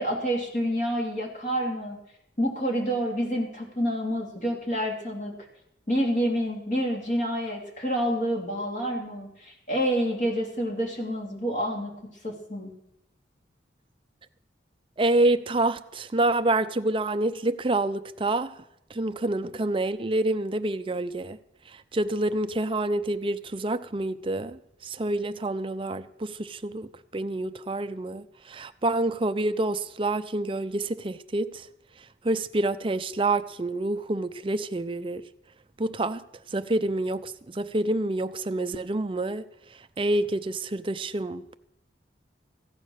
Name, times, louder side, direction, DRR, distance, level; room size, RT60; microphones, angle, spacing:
voice 1, 0.0-2.0 2.4-5.3 5.9-11.9 12.2-12.7, equal, 40° left, 3.0 m, -28 dB
voice 2, 15.0-18.6 18.9-21.4 21.7-31.7 32.2-35.2 35.8-36.2 36.5-39.5 40.0-41.6, right 2 dB, 30° right, 0.5 m, -27 dB
15.5 x 9.3 x 6.4 m
head